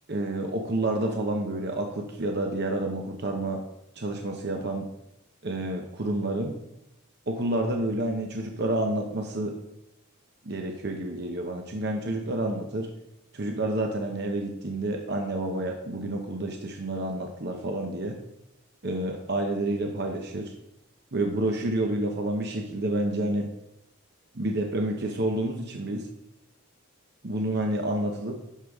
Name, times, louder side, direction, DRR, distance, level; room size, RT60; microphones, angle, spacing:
voice 1, 0.1-3.6 4.0-4.9 5.4-6.5 7.3-9.6 10.4-12.9 13.3-18.2 18.8-20.5 21.1-23.5 24.3-26.1 27.2-28.4, right 1 dB, 50° right, 2 dB, 0.8 m, -29 dB
11.5 x 6.4 x 3.5 m, 0.85 s
head